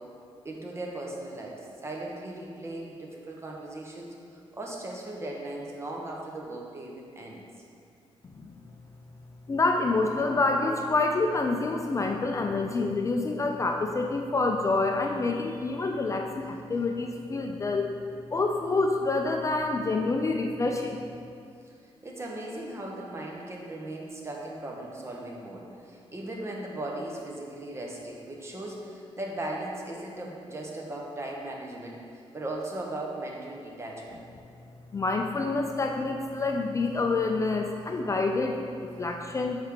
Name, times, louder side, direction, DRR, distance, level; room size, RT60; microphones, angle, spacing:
voice 1, 0.4-4.1 4.5-7.4 21.6-34.2, right 1 dB, 25° right, -2 dB, 1.0 m, -38 dB
voice 2, 9.5-17.9 18.3-21.0 34.9-39.6, left 3 dB, 30° left, 2 dB, 0.4 m, -27 dB
6.5 x 4.5 x 3.6 m, 2.4 s
cardioid pair, 100°, 11 cm